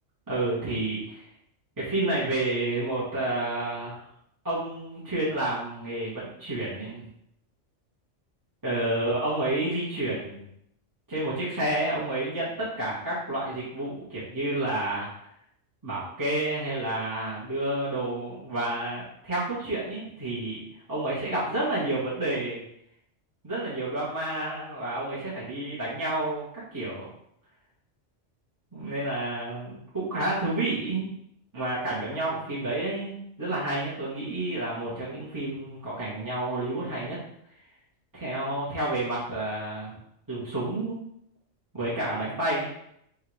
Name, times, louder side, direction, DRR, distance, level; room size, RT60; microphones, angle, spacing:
voice 1, 0.3-1.2 1.8-4.0 4.4-7.1 8.6-10.4 11.1-15.1 15.8-20.6 20.9-22.6 23.4-27.1 28.7-31.1 31.5-37.2 38.1-40.0 40.3-41.0 41.7-42.7, right 1 dB, 15° right, -10 dB, 1.3 m, -30 dB
3.6 x 2.8 x 4.7 m, 0.74 s
omnidirectional pair, 1.2 m